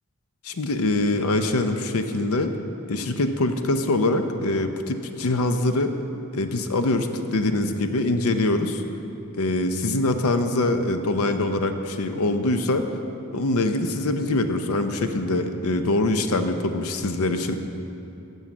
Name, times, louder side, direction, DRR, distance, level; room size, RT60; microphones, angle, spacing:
voice 1, 0.4-2.5 2.9-5.9 6.3-8.8 9.3-12.8 13.3-17.6, left 2 dB, 85° left, 8 dB, 0.6 m, -24 dB
14.5 x 5.5 x 6.1 m, 2.7 s
head